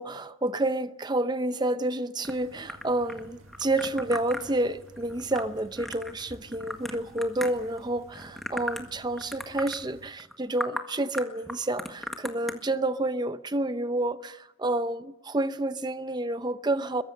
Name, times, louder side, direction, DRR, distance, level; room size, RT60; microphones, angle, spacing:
voice 1, 0.0-17.0, right 2 dB, 20° right, 0.7 m, -29 dB
sound 1, 2.2-7.8 8.1-8.9 9.2-9.8 10.2-10.3 10.6-10.8 11.1-12.5, equal, ahead, 1.7 m, -37 dB
sound 2, 2.3-10.1, right 1 dB, 90° right, 1.8 m, -53 dB
22.5 x 22.5 x 6.5 m
head